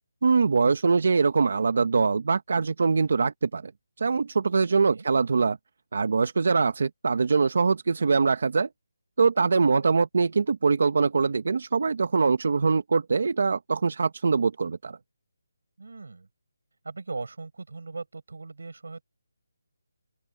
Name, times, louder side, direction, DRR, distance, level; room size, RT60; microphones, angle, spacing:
voice 1, 0.2-3.7 4.0-5.6 5.9-8.7 9.2-15.0, right 4 dB, 50° right, 1.1 m, -23 dB
voice 2, 15.8-16.3 16.8-19.0, right 3 dB, 70° right, 6.4 m, -38 dB
open air
hypercardioid pair, 175°, 0 cm